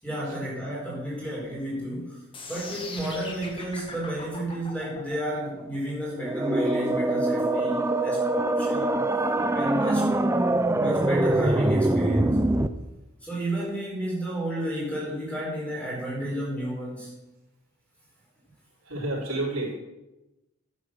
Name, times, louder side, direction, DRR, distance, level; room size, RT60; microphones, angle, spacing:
voice 1, 0.0-9.0 9.5-10.3 10.7-12.5 13.2-17.1, right 1 dB, 5° left, -5 dB, 4.8 m, -32 dB
sound 1, 2.3-8.4, left 3 dB, 25° left, 1.5 m, -41 dB
sound 2, 6.2-12.7, right 2 dB, 15° right, 0.4 m, -24 dB
voice 2, 18.9-19.7, right 2 dB, 85° right, -3 dB, 3.8 m, -29 dB
10.5 x 8.8 x 6.4 m, 1.0 s
head